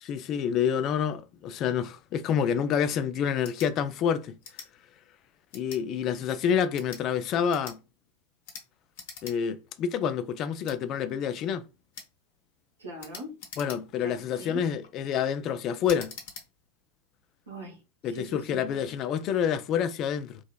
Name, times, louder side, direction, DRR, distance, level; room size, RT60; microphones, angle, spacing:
voice 1, 0.0-4.4 5.5-7.8 9.2-11.6 13.6-16.1 18.0-20.4, left 8 dB, 35° left, 0.3 m, -28 dB
sound 1, 3.4-3.7 4.4-4.7 5.5-5.8 6.6-7.0 7.5-7.8 8.4-8.7 8.9-9.4 9.7-9.8 10.6-10.8 11.9-12.1 13.0-14.1 14.6-14.9 15.8-16.5, left 6 dB, 50° left, 0.9 m, -44 dB
voice 2, 12.8-13.4 14.0-14.8 17.5-18.7, right 1 dB, 75° right, 1.2 m, -42 dB
3.1 x 2.7 x 2.3 m
figure-of-eight pair, 90°, 0 cm